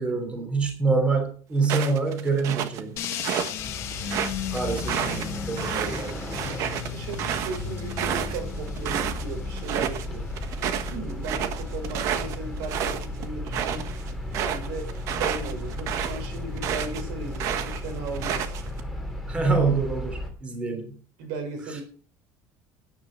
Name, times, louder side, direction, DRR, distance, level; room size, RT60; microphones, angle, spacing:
voice 1, 0.0-3.0 4.5-6.2 19.3-21.0, right 4 dB, 15° right, 5 dB, 3.5 m, -26 dB
sound 1, 1.6-3.5 3.9-9.2 9.6-10.1 10.4-17.0 17.3-18.8, right 9 dB, 45° right, 1.4 m, -30 dB
sound 2, 3.0-13.2, left 9 dB, 40° left, 1.7 m, -37 dB
sound 3, 3.6-20.3, left 1 dB, ahead, 2.6 m, -35 dB
voice 2, 6.8-10.3 10.7-13.9 14.3-18.5 21.2-21.8, right 3 dB, 75° right, 5 dB, 6.1 m, -36 dB
11.5 x 10.0 x 6.4 m, 0.42 s
cardioid pair, 175°, 7 cm